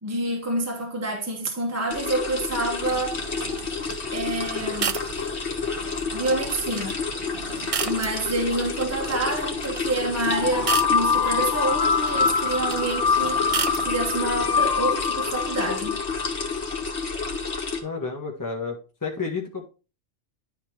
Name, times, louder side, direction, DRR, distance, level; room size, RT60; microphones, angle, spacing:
voice 1, 0.0-3.2 4.1-4.9 6.1-7.0 7.8-16.0, right 2 dB, 15° right, 1.1 m, -27 dB
sound 1, 1.9-17.8, left 4 dB, 75° left, 1.6 m, -30 dB
sound 2, 2.8-14.7, right 7 dB, 55° right, 0.4 m, -35 dB
sound 3, 10.3-17.1, left 5 dB, 40° left, 0.8 m, -25 dB
voice 2, 17.8-19.7, left 4 dB, 20° left, 1.1 m, -31 dB
10.5 x 3.6 x 4.6 m
omnidirectional pair, 1.2 m